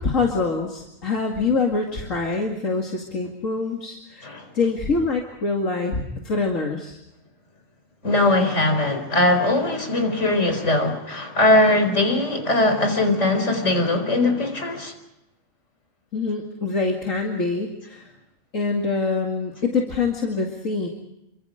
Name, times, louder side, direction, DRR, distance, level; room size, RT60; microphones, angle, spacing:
voice 1, 0.0-7.0 16.1-18.1 18.5-20.9, left 4 dB, 80° left, 2.8 m, -25 dB
voice 2, 8.0-14.9, left 2 dB, 65° left, 4.7 m, -20 dB
28.5 x 25.0 x 5.1 m
omnidirectional pair, 1.3 m